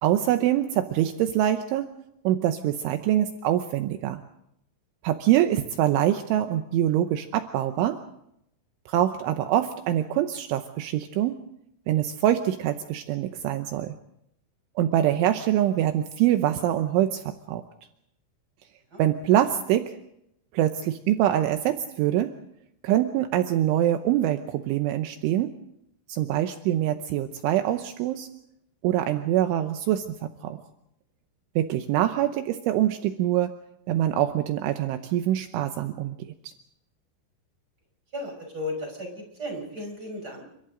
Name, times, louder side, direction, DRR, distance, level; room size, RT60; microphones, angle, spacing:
voice 1, 0.0-1.9 2.2-4.2 5.0-8.0 8.9-11.4 11.9-14.0 14.8-17.2 17.5-17.6 19.0-20.0 20.5-22.3 22.8-25.5 26.1-28.3 28.8-30.6 31.6-33.5 33.9-36.2, right 12 dB, 80° right, 7 dB, 3.2 m, -24 dB
voice 2, 38.1-40.5, left 1 dB, 20° right, 2 dB, 5.8 m, -35 dB
29.5 x 26.0 x 3.9 m, 0.77 s
omnidirectional pair, 5.8 m